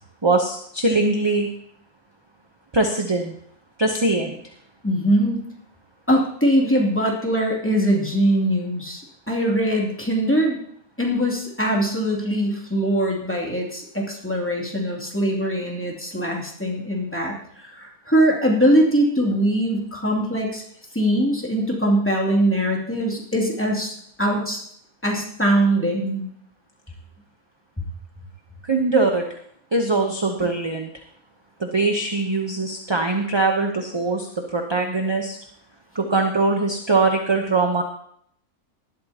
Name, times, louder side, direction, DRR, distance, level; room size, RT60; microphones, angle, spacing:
voice 1, 0.2-1.5 2.7-3.3 3.8-4.4 28.6-29.2 29.7-30.9 31.6-35.4 35.9-37.8, right 3 dB, 25° right, 3 dB, 0.7 m, -22 dB
voice 2, 4.8-5.4 6.1-9.0 9.3-10.6 11.0-20.6 20.9-24.6 25.0-26.3 30.4-30.5, equal, 10° left, -2 dB, 2.6 m, -22 dB
18.5 x 12.0 x 2.9 m, 0.67 s
omnidirectional pair, 1.6 m